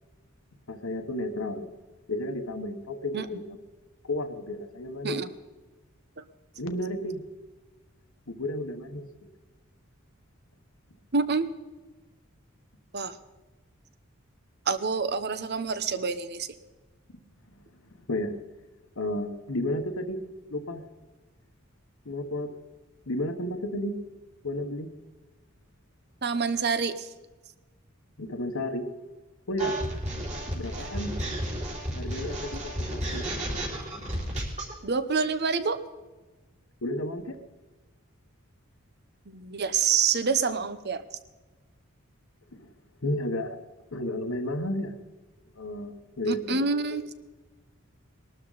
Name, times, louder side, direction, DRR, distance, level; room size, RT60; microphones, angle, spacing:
voice 1, 0.7-1.7 2.1-3.4 4.0-5.2 6.6-7.2 8.3-9.0 17.1-17.2 18.1-18.4 19.0-20.2 20.5-20.8 22.0-22.5 23.1-24.0 24.4-24.9 28.2-28.9 29.5-29.8 30.5-31.1 31.9-33.3 36.8-37.3 42.5-42.7 43.0-43.6 43.9-44.9 45.6-46.6, left 1 dB, 70° left, 6 dB, 1.2 m, -32 dB
voice 2, 11.1-11.5 12.9-13.2 14.7-16.5 26.2-27.1 30.7-30.9 34.8-35.8 39.3-41.0 46.3-47.0, right 5 dB, 50° right, 13 dB, 0.9 m, -27 dB
sound 1, 29.6-34.7, right 1 dB, 35° right, 4.0 m, -32 dB
21.0 x 12.5 x 4.1 m, 1.2 s
head